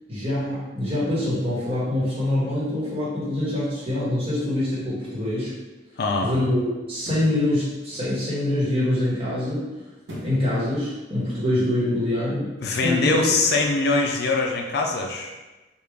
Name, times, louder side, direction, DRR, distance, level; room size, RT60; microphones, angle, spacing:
voice 1, 0.1-5.5 6.2-9.7 10.2-12.5 12.8-13.3, left 1 dB, 30° right, -8 dB, 1.3 m, -25 dB
voice 2, 6.0-6.3 12.6-15.3, left 3 dB, 60° left, 2 dB, 0.4 m, -22 dB
sound 1, 6.9-7.4 10.0-10.5 11.0-11.1, equal, 80° right, 0.9 m, -38 dB
3.5 x 2.4 x 3.2 m, 1.1 s
head